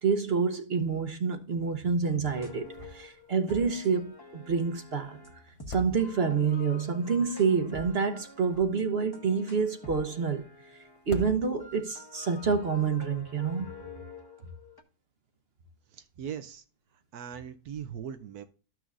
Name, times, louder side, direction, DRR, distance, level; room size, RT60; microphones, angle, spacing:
voice 1, 0.0-5.2 5.7-10.4 11.1-13.7, right 5 dB, 50° right, 0.9 m, -28 dB
sound 1, 2.3-11.1 11.6-14.8, left 2 dB, 20° left, 0.9 m, -48 dB
sound 2, 2.7-3.2 3.5-3.6 5.5-6.5 8.2-9.1 10.9-11.9, right 3 dB, 35° left, 0.5 m, -41 dB
voice 2, 15.9-16.6 17.1-18.4, right 8 dB, 80° right, 1.1 m, -40 dB
13.5 x 6.2 x 2.4 m
omnidirectional pair, 1.6 m